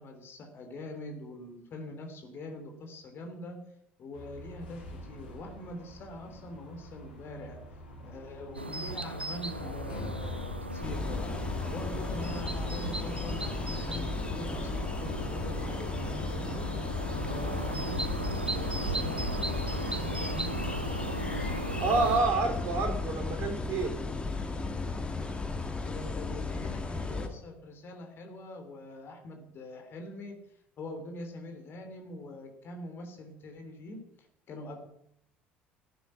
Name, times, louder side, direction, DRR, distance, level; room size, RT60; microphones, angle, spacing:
voice 1, 0.0-3.6 4.0-7.6 8.0-16.9 17.2-19.3 19.7-20.7 22.1-22.5 22.7-22.9 25.8-30.4 30.8-34.9, left 1 dB, 45° left, 4 dB, 3.4 m, -43 dB
sound 1, 4.1-17.7, left 2 dB, 75° left, 2.9 m, -47 dB
sound 2, 8.5-22.2, right 2 dB, 90° right, 0.7 m, -37 dB
sound 3, 10.8-27.3, left 3 dB, 20° left, 1.9 m, -35 dB
voice 2, 21.8-24.0, right 3 dB, 50° right, 4 dB, 3.8 m, -28 dB
15.0 x 9.2 x 6.0 m, 0.76 s
figure-of-eight pair, 60°, 6 cm